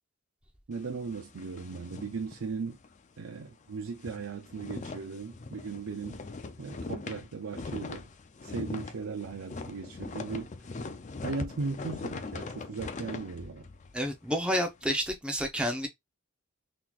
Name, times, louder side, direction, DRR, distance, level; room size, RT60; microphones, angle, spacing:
sound 1, 0.7-3.0 3.3-3.4 3.8-14.9, left 3 dB, 35° left, 0.4 m, -41 dB
voice 1, 0.7-2.8 3.2-6.2 6.6-8.1 8.4-10.5 11.2-13.7, right 4 dB, 80° right, 0.5 m, -37 dB
voice 2, 13.9-15.9, equal, 5° right, 0.8 m, -30 dB
3.9 x 3.0 x 2.4 m
head